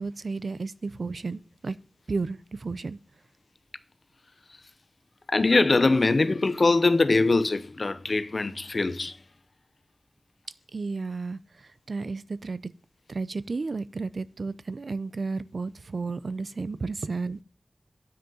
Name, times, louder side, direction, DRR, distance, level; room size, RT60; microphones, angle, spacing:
voice 1, 0.0-1.8 2.1-3.0 10.7-12.7 13.1-17.4, right 4 dB, 70° right, 0.6 m, -33 dB
voice 2, 5.3-9.2, left 3 dB, 55° left, 0.8 m, -22 dB
9.6 x 6.4 x 5.5 m
wide cardioid pair, 75°, 0 cm